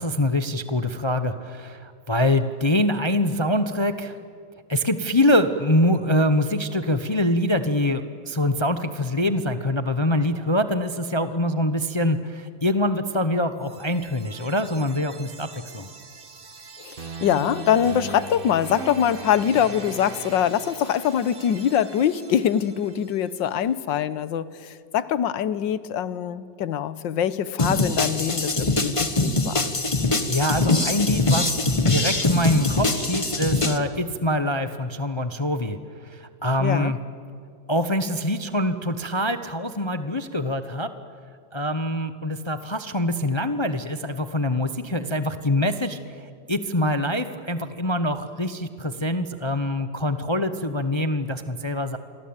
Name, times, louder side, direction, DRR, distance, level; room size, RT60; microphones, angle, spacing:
voice 1, 0.0-4.1 4.7-15.5 15.7-15.9 30.3-31.5 31.9-35.8 36.1-37.0 37.7-40.9 41.5-46.0 46.5-52.0, left 1 dB, 35° left, 10 dB, 0.4 m, -24 dB
sound 1, 13.6-23.5, right 3 dB, 30° right, 1.3 m, -40 dB
voice 2, 16.8-29.7 36.6-36.9, left 9 dB, 70° left, 15 dB, 1.6 m, -24 dB
sound 2, 27.6-33.8, left 2 dB, 20° left, 1.1 m, -23 dB
28.0 x 23.5 x 8.8 m, 2.3 s
omnidirectional pair, 2.2 m